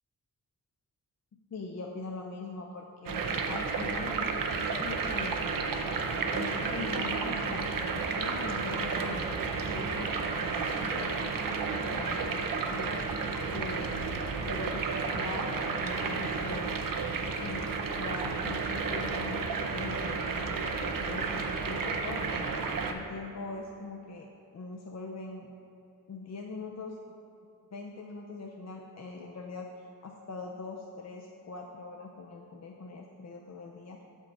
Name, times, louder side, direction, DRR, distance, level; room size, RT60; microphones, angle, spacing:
voice 1, 1.3-4.3 4.5-5.4 6.3-12.9 13.5-14.1 14.4-16.8 17.4-22.4 22.9-24.3 24.5-25.5 26.1-27.0 27.7-29.7 30.0-34.0, left 3 dB, 50° left, 1 dB, 0.5 m, -42 dB
sound 1, 3.1-22.9, right 4 dB, 70° right, 0.6 m, -32 dB
6.0 x 5.4 x 4.2 m, 2.8 s
cardioid pair, 60°, 35 cm